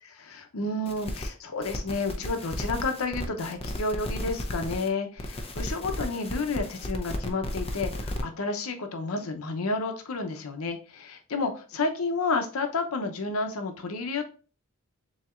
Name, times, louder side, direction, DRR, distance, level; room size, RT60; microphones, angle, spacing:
voice 1, 0.0-14.3, left 3 dB, 85° left, 6 dB, 0.7 m, -31 dB
sound 1, 0.9-1.3 1.6-4.9 5.2-8.2, left 1 dB, 30° left, 0.6 m, -34 dB
7.1 x 2.8 x 2.4 m, 0.37 s
head